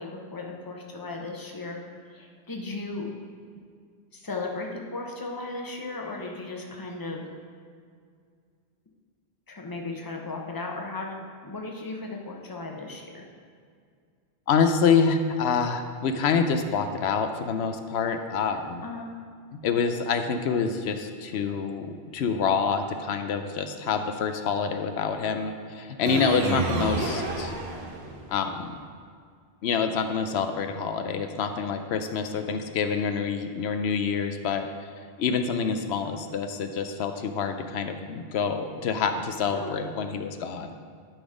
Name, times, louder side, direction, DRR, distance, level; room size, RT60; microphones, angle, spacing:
voice 1, 0.0-1.8 2.1-3.1 4.1-7.2 9.5-13.2 18.8-19.1 26.4-26.5 39.5-39.7, left 3 dB, 20° left, 0 dB, 0.9 m, -36 dB
voice 2, 14.5-18.8 19.5-27.5 28.3-28.9 29.6-34.7 35.2-40.7, left 5 dB, 85° left, 7 dB, 0.9 m, -27 dB
sound 1, 26.1-28.4, right 2 dB, 90° right, 1.2 m, -30 dB
12.0 x 4.1 x 4.9 m, 2.1 s
omnidirectional pair, 1.0 m